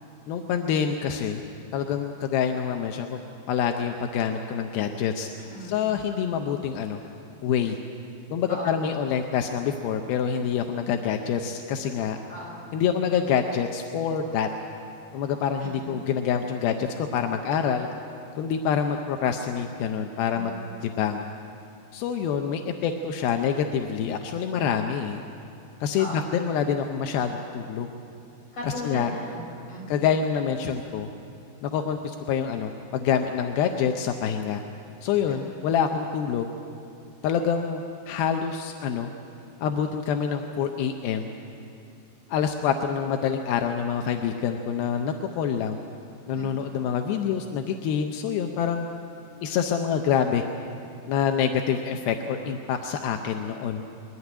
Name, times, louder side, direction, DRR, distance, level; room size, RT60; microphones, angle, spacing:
voice 1, 0.3-1.4 1.7-3.2 3.5-5.3 5.6-7.0 7.4-7.8 8.3-12.2 12.7-14.5 15.1-17.9 18.4-20.5 20.8-21.2 21.9-25.2 25.8-27.9 28.6-29.1 29.9-31.1 31.6-34.6 35.0-36.5 37.2-39.1 39.6-41.3 42.3-45.8 46.3-48.9 49.4-50.4 51.1-53.8, left 7 dB, 80° left, 5 dB, 2.3 m, -26 dB
voice 2, 5.5-5.8 8.5-8.9 12.3-12.6 15.6-16.0 20.3-20.4 26.0-26.3 28.5-29.9 35.3-35.4 46.3-46.5, left 1 dB, 35° left, -3 dB, 6.1 m, -37 dB
22.0 x 14.5 x 9.8 m, 2.7 s
omnidirectional pair, 5.1 m